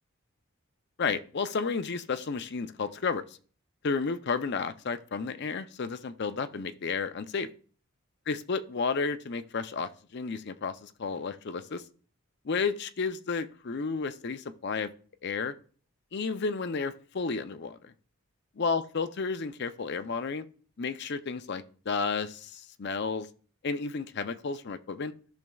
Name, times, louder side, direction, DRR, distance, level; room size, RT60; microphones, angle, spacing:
voice 1, 1.0-3.2 3.8-7.5 8.3-11.8 12.4-14.9 15.2-15.5 16.1-17.9 18.6-20.4 20.8-23.3 23.6-25.1, left 4 dB, 50° left, 10 dB, 0.5 m, -32 dB
14.0 x 6.3 x 2.3 m, 0.42 s
head